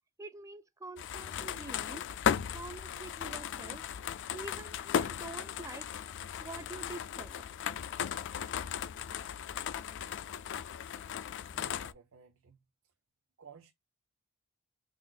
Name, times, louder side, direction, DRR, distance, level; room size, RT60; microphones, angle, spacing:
voice 1, 0.2-2.1 2.5-3.9 4.3-5.9 6.4-7.5, right 2 dB, 15° right, 0.4 m, -46 dB
sound 1, 1.0-11.9, left 8 dB, 55° left, 0.4 m, -36 dB
voice 2, 11.5-12.6 13.4-13.7, right 6 dB, 65° right, 0.7 m, -54 dB
5.9 x 2.5 x 2.4 m
head